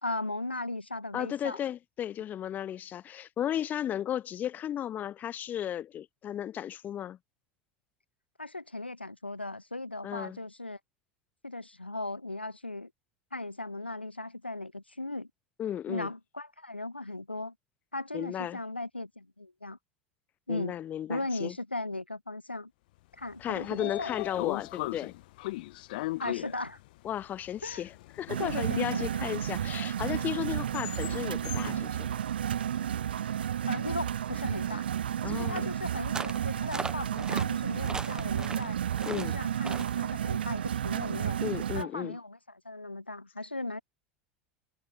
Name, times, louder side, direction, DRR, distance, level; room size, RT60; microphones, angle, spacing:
voice 1, 0.0-1.6 8.4-10.8 11.4-12.9 13.3-15.3 15.9-17.5 17.9-19.8 20.5-20.8 21.1-22.7 23.2-24.1 26.2-26.8 27.6-27.8 28.4-29.2 33.7-34.9 35.3-38.8 39.1-41.4 41.7-43.8, left 2 dB, 85° left, 0.7 m, -37 dB
voice 2, 1.1-7.2 10.0-10.4 15.6-16.1 18.1-18.6 20.5-21.5 23.4-25.1 27.0-32.1 35.2-35.7 39.0-39.4 41.4-42.2, left 10 dB, 30° left, 0.8 m, -35 dB
Train / Sliding door, 23.2-33.4, left 19 dB, 60° left, 1.4 m, -40 dB
sound 1, 28.3-41.8, right 9 dB, 70° right, 0.7 m, -32 dB
sound 2, 36.1-36.4 36.7-37.5 37.8-38.7 39.0-39.3 39.6-39.9, right 4 dB, 15° right, 0.7 m, -37 dB
figure-of-eight pair, 75°, 6 cm